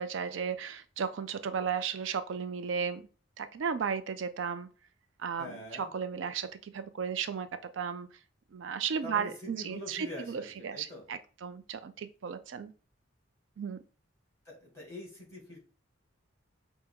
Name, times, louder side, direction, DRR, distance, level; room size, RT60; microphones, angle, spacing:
voice 1, 0.0-3.0 3.4-4.7 5.2-7.5 7.7-8.1 8.5-12.7 13.6-13.8, right 6 dB, 65° right, 11 dB, 0.4 m, -35 dB
voice 2, 5.4-5.9 9.0-11.0 14.4-15.6, left 1 dB, 15° left, -2 dB, 2.2 m, -44 dB
5.6 x 2.0 x 3.5 m, 0.38 s
head